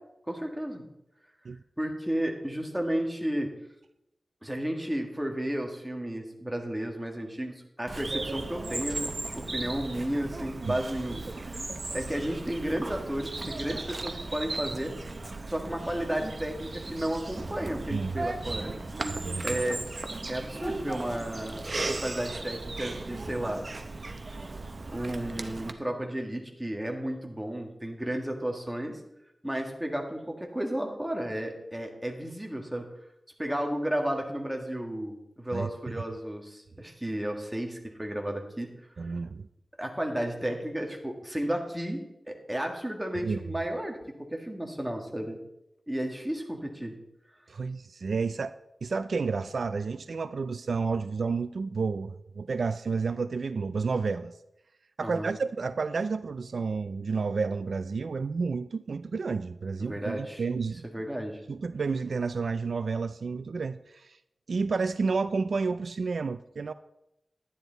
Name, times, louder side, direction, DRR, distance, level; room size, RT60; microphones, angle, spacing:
voice 1, 0.3-0.8 1.8-3.5 4.4-11.2 11.5-14.9 15.5-18.7 19.4-19.8 20.3-23.6 24.9-29.0 29.4-32.8 33.4-38.7 39.0-39.1 39.8-44.0 44.3-45.4 45.9-46.9 55.0-55.3 59.8-60.4 60.9-61.4, right 1 dB, 10° right, 1.8 m, -33 dB
Bird vocalization bird call bird song, 7.9-25.7, right 2 dB, 45° right, 0.8 m, -36 dB
voice 2, 17.9-18.2 19.1-19.6 35.5-36.0 39.0-39.5 43.2-43.4 47.5-54.3 55.0-60.8 61.5-64.2 64.5-66.7, right 4 dB, 80° right, 0.3 m, -31 dB
11.0 x 10.0 x 4.0 m
wide cardioid pair, 90°, 0 cm